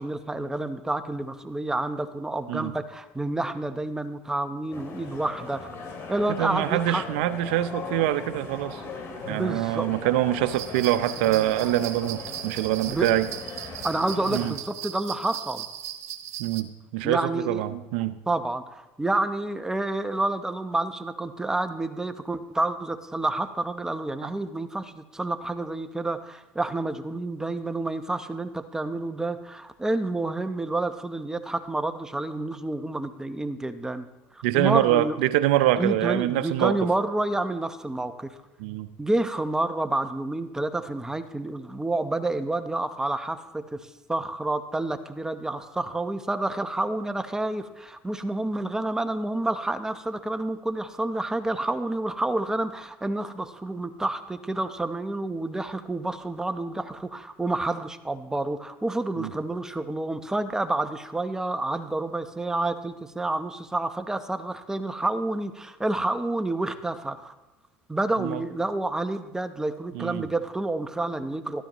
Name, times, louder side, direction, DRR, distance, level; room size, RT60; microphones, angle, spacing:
voice 1, 0.0-5.7 6.1-7.0 9.3-10.0 12.9-13.1 13.8-15.7 17.0-17.6 18.3-34.1 34.3-35.2 35.8-38.3 39.0-67.3 67.9-71.6, right 2 dB, 10° right, 9 dB, 0.9 m, -29 dB
sound 1, 4.7-14.5, left 4 dB, 50° left, 2.5 m, -39 dB
voice 2, 6.3-8.8 9.3-13.3 13.6-13.8 14.3-14.5 16.4-18.2 24.2-24.3 34.4-36.8 38.6-38.9 59.2-59.3 68.2-68.4 69.9-70.2, right 14 dB, 80° right, 12 dB, 0.6 m, -25 dB
sound 2, 10.5-16.6, right 10 dB, 55° right, 0.9 m, -38 dB
13.0 x 12.5 x 3.1 m, 1.0 s
supercardioid pair, 95°, 6 cm